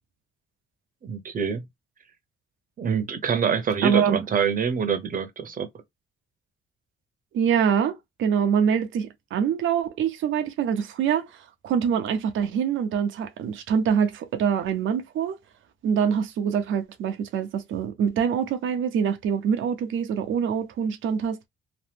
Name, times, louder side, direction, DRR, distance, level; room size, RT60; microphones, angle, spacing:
voice 1, 1.0-1.6 2.8-5.7, right 6 dB, 45° right, 0.8 m, -25 dB
voice 2, 3.8-4.2 7.3-15.4 15.8-21.5, right 7 dB, 75° right, 0.8 m, -25 dB
3.0 x 2.0 x 3.4 m
cardioid pair, 90°, 20 cm